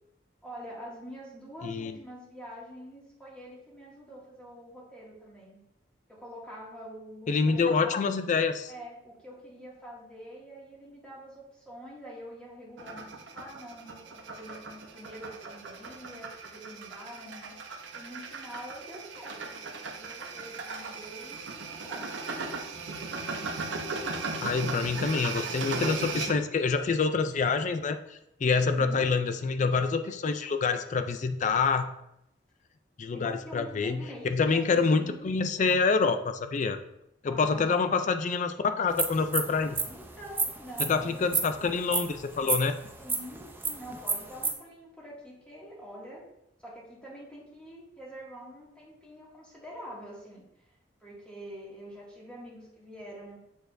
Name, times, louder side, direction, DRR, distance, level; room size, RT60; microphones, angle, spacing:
voice 1, 0.4-5.6 6.1-8.0 8.7-17.6 17.9-22.1 28.6-29.1 33.1-35.4 37.2-38.1 39.9-41.7 43.0-46.2 46.6-50.4 51.0-53.4, equal, 5° left, -6 dB, 2.1 m, -46 dB
voice 2, 1.6-1.9 7.3-8.7 24.4-31.9 33.0-34.0 34.3-36.8 37.2-39.8 40.9-42.7, left 4 dB, 40° left, 9 dB, 0.4 m, -27 dB
sound 1, 12.8-26.4, right 4 dB, 80° right, 0.8 m, -37 dB
sound 2, 38.9-44.5, right 4 dB, 10° right, 0.6 m, -31 dB
6.8 x 6.5 x 2.6 m, 0.82 s
head